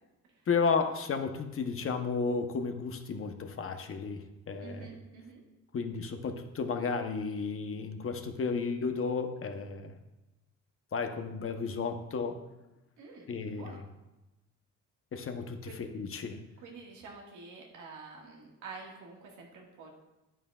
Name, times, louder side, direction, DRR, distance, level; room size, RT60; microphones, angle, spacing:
voice 1, 0.5-4.9 5.7-9.9 10.9-12.4 13.3-13.8 15.1-16.4, left 5 dB, 45° left, 6 dB, 0.9 m, -33 dB
voice 2, 4.6-5.4 13.0-13.8 15.6-15.8 16.6-19.9, right 4 dB, 85° right, -1 dB, 1.8 m, -48 dB
9.2 x 8.9 x 2.4 m, 1.0 s
cardioid pair, 90°, 30 cm